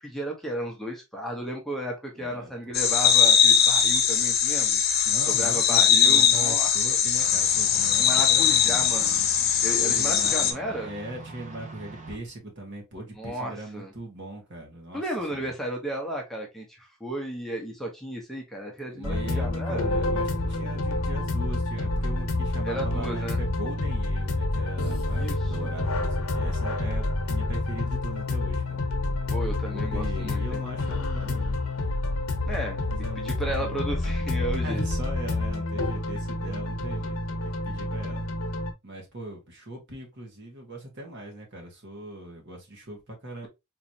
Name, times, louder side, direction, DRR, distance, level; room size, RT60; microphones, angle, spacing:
voice 1, 0.0-4.8 5.3-7.0 8.0-9.3 9.6-10.9 13.2-13.9 14.9-19.9 22.6-23.4 25.2-25.7 29.3-30.6 32.5-32.8 33.2-34.8, right 1 dB, ahead, 0.8 m, -34 dB
voice 2, 2.1-2.7 5.1-9.0 9.7-15.0 15.3-15.5 18.8-28.8 29.6-31.7 32.9-33.8 34.6-38.3 38.8-43.5, right 1 dB, 55° right, 1.6 m, -39 dB
sound 1, 2.7-10.5, left 8 dB, 45° left, 0.8 m, -21 dB
sound 2, 7.1-12.2, right 1 dB, 35° right, 0.8 m, -43 dB
sound 3, 19.0-38.7, left 2 dB, 75° left, 0.9 m, -28 dB
4.1 x 3.0 x 2.7 m
head